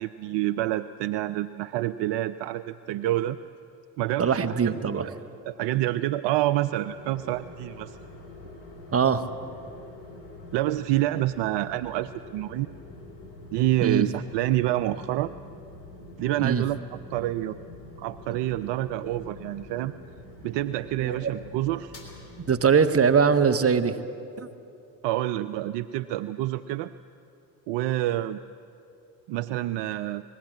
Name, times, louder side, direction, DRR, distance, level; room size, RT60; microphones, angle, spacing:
voice 1, 0.0-3.4 4.0-5.1 5.5-8.0 10.5-12.7 13.5-15.3 16.2-16.8 17.1-17.6 18.0-19.9 20.4-21.9 25.0-26.9 27.7-28.4 29.3-30.2, right 14 dB, 65° right, 11 dB, 0.6 m, -27 dB
voice 2, 4.2-5.1 8.9-9.3 13.8-14.1 16.4-16.6 21.0-21.3 22.5-23.9 24.4-24.5, right 6 dB, 30° right, 9 dB, 1.2 m, -22 dB
sound 1, 6.8-22.5, left 1 dB, 75° left, 3.6 m, -45 dB
20.0 x 15.0 x 9.0 m, 2.7 s
hypercardioid pair, 55°, 46 cm